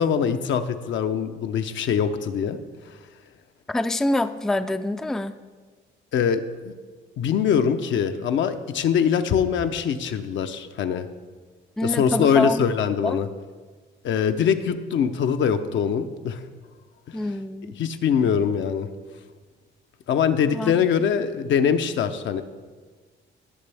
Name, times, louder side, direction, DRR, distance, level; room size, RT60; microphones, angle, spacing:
voice 1, 0.0-2.6 6.1-6.7 7.2-11.1 11.8-13.3 14.0-16.4 17.1-17.2 17.8-18.9 20.1-22.4, left 7 dB, 70° left, 8 dB, 0.7 m, -23 dB
voice 2, 3.7-5.4 11.8-13.2 17.1-17.7 20.5-20.7, left 2 dB, ahead, 9 dB, 0.3 m, -26 dB
16.5 x 6.0 x 3.4 m, 1.4 s
cardioid pair, 90°, 20 cm